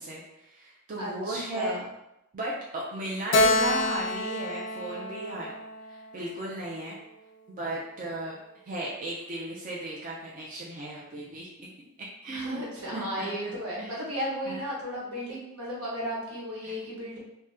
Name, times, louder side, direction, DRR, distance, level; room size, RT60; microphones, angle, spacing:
voice 1, 0.0-1.8 2.3-5.5 5.9-7.0 7.6-8.4 8.7-11.7 12.2-12.7 12.9-14.0 14.5-14.6 16.6-16.7, right 1 dB, 40° right, -5 dB, 0.4 m, -36 dB
voice 2, 1.0-1.8 12.3-17.2, equal, 80° right, -5 dB, 1.1 m, -34 dB
Keyboard (musical), 3.3-6.8, left 1 dB, 55° left, 0.4 m, -28 dB
2.8 x 2.1 x 3.5 m, 0.86 s
head